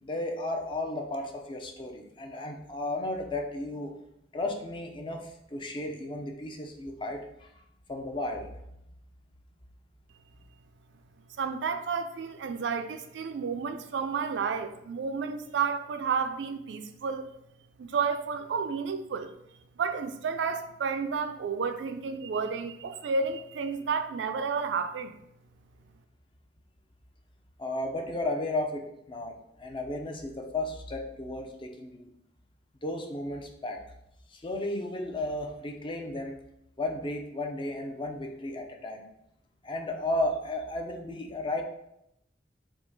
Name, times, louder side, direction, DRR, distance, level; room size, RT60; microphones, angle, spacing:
voice 1, 0.0-3.9 4.3-7.5 7.9-8.5 27.6-32.1 32.8-33.8 34.3-36.4 36.8-39.1 39.6-41.6, left 1 dB, 30° left, 0.5 m, -34 dB
voice 2, 11.4-17.3 17.8-19.3 19.8-25.1, right 5 dB, 85° right, 0.4 m, -31 dB
3.6 x 2.8 x 3.9 m
head